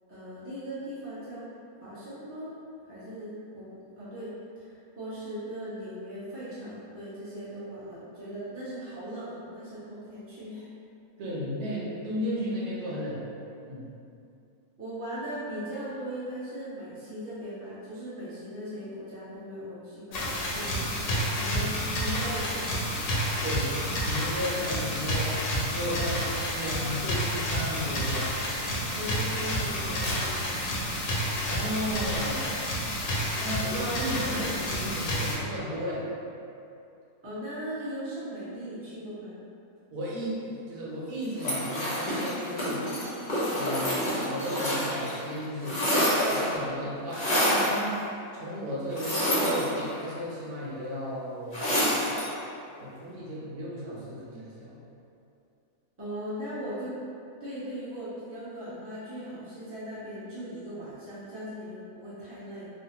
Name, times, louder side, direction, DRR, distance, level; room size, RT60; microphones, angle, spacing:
voice 1, 0.1-1.5 1.8-2.6 2.8-10.7 14.8-21.7 22.0-22.8 28.9-30.6 37.2-39.4 56.0-57.0 57.4-62.7, equal, 15° right, -12 dB, 0.5 m, -39 dB
voice 2, 11.2-13.2 13.6-13.9 23.4-23.7 24.0-25.4 25.7-28.3 31.4-32.5 33.4-36.0 39.9-43.1 43.5-45.8 46.1-47.9 48.3-52.1 52.8-54.8, equal, 85° right, -7 dB, 1.3 m, -34 dB
sound 1, 20.1-35.4, equal, 70° left, 0.9 m, -30 dB
sound 2, 41.4-45.2 45.4-46.6 47.1-47.8 48.9-50.1 51.5-52.3, equal, 45° left, 0.6 m, -27 dB
3.2 x 2.0 x 2.8 m, 2.6 s
omnidirectional pair, 1.6 m